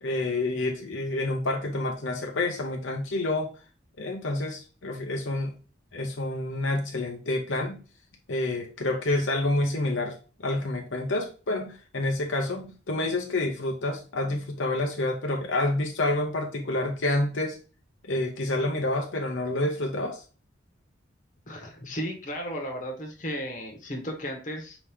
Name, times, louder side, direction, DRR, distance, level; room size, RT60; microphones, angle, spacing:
voice 1, 0.0-3.5 4.0-5.5 5.9-7.8 8.3-17.6 18.0-20.2, left 2 dB, 80° left, 1 dB, 0.8 m, -28 dB
voice 2, 21.5-24.8, equal, 40° left, 1 dB, 1.1 m, -34 dB
4.8 x 3.0 x 3.4 m, 0.36 s
head